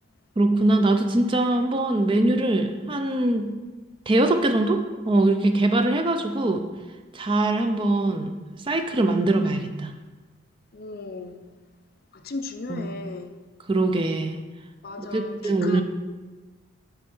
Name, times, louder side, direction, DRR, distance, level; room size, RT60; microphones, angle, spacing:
voice 1, 0.4-3.5 4.1-4.8 5.1-6.6 7.1-9.9 12.7-12.9 13.7-14.4 15.0-15.8, right 2 dB, 25° right, 0.4 m, -22 dB
voice 2, 10.7-11.4 12.1-13.4 14.8-15.8, left 3 dB, 45° left, 0.5 m, -36 dB
8.8 x 4.4 x 5.4 m
head